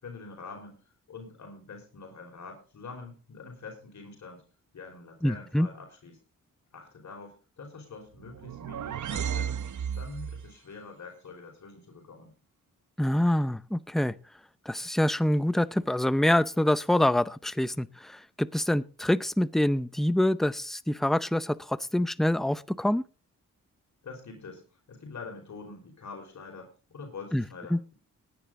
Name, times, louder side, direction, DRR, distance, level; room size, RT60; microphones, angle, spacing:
voice 1, 0.0-4.4 4.7-6.2 6.7-9.5 9.9-12.3 24.0-27.9, left 4 dB, 60° left, 2 dB, 4.9 m, -45 dB
voice 2, 5.2-5.7 13.0-14.1 14.7-23.0 27.3-27.4 27.7-27.8, left 1 dB, ahead, 16 dB, 0.7 m, -26 dB
sound 1, 8.2-10.5, right 8 dB, 65° right, 1.0 m, -34 dB
19.0 x 10.5 x 3.8 m, 0.33 s
cardioid pair, 90°, 32 cm